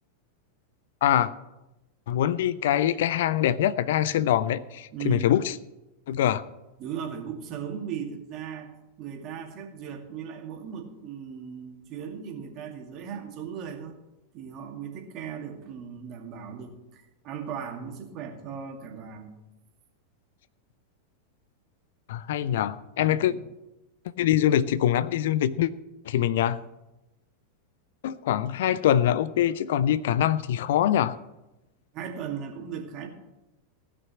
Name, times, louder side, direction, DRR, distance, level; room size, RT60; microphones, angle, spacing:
voice 1, 1.0-1.3 2.1-5.5 6.1-6.4 22.1-23.3 24.2-25.7 26.1-26.6 28.0-31.2, left 11 dB, 55° left, 17 dB, 0.5 m, -24 dB
voice 2, 4.9-5.3 6.8-8.7 9.0-13.9 14.3-19.4 23.3-23.4 31.9-33.1, right 7 dB, 35° right, 3 dB, 2.3 m, -37 dB
17.0 x 6.0 x 7.6 m, 0.98 s
figure-of-eight pair, 90°, 0 cm